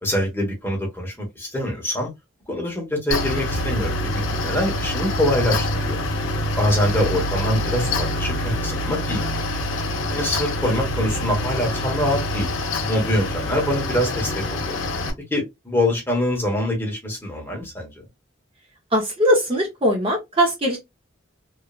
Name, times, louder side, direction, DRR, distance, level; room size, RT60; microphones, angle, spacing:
voice 1, 0.0-2.1 2.5-6.0 6.6-9.2 10.1-12.6 12.9-14.8 15.3-18.1, left 1 dB, 10° left, 1.1 m, -24 dB
Mechanical fan, 3.1-15.1, left 1 dB, 75° left, 0.7 m, -25 dB
voice 2, 18.9-20.8, equal, 25° right, 0.6 m, -20 dB
3.1 x 2.2 x 2.2 m
head